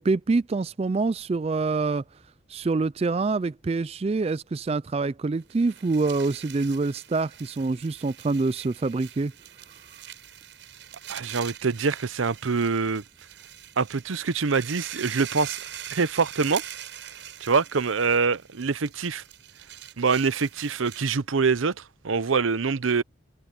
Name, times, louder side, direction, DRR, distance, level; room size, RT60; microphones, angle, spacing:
voice 1, 0.0-2.0 2.5-9.3, right 3 dB, 30° right, 0.3 m, -26 dB
sound 1, 5.4-21.2, right 10 dB, 65° right, 6.2 m, -43 dB
voice 2, 11.1-13.0 13.8-15.6 15.9-16.6 17.4-19.2 20.0-23.0, right 5 dB, 85° right, 0.7 m, -25 dB
head